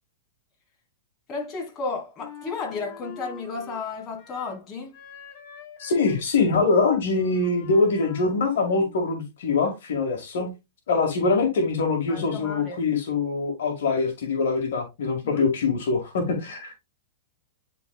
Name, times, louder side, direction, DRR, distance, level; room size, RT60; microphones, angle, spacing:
voice 1, 1.3-4.9 10.3-10.5 12.1-12.8 15.2-15.5, left 4 dB, 30° left, 2.9 m, -33 dB
Wind instrument woodwind instrument, 2.2-4.6 4.9-9.0, left 5 dB, 55° left, 2.8 m, -45 dB
voice 2, 5.8-10.5 10.9-16.7, left 4 dB, 70° left, 2.1 m, -23 dB
9.7 x 4.2 x 2.4 m
hypercardioid pair, 125°, 0 cm